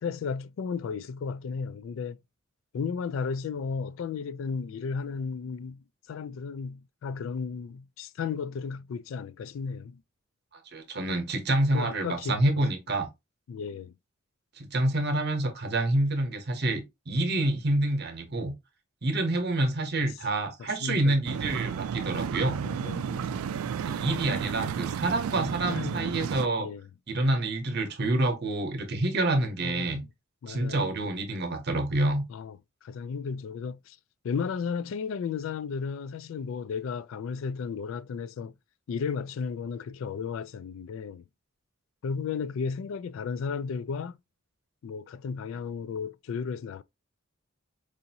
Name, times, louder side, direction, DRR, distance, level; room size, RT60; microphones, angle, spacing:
voice 1, 0.0-2.2 2.7-10.0 11.7-12.7 13.5-13.9 20.8-21.2 22.6-23.6 25.7-26.3 26.6-26.9 29.6-30.1 30.4-30.9 32.3-34.0 34.2-38.5 38.9-41.2 42.0-44.2 44.8-46.8, left 5 dB, 65° left, 0.3 m, -34 dB
voice 2, 10.7-13.1 14.6-18.5 19.0-22.6 23.8-26.7 27.1-30.0 30.5-32.2, right 2 dB, 50° right, 0.9 m, -27 dB
sound 1, 21.3-26.5, right 7 dB, 80° right, 0.3 m, -32 dB
4.9 x 2.6 x 2.8 m
head